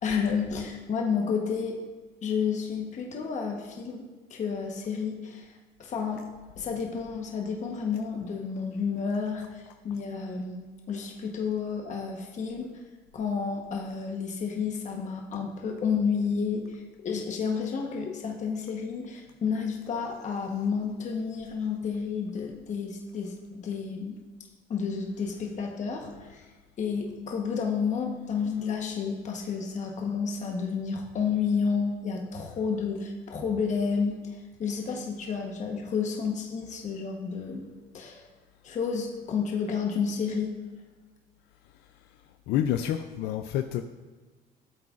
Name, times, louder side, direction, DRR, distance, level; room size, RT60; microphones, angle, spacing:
voice 1, 0.0-1.8 2.2-12.7 13.1-24.2 24.7-26.5 26.8-37.7 37.9-38.3 38.6-40.5, left 6 dB, 45° left, 1 dB, 1.1 m, -31 dB
voice 2, 42.5-43.8, left 11 dB, 80° left, 7 dB, 0.4 m, -28 dB
13.0 x 7.8 x 2.5 m, 1.3 s
cardioid pair, 110°, 17 cm